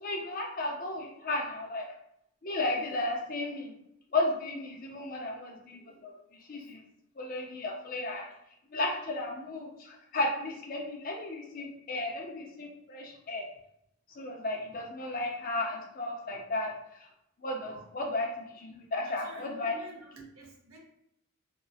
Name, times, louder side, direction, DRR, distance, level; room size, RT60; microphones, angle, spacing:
voice 1, 0.0-1.9 2.4-3.7 4.1-6.2 6.5-6.8 7.2-8.3 8.7-13.5 14.2-17.1 17.4-19.7, left 2 dB, 40° left, 0 dB, 0.5 m, -34 dB
voice 2, 19.0-20.8, right 2 dB, 75° right, -2 dB, 0.9 m, -49 dB
2.8 x 2.6 x 2.3 m, 0.77 s
head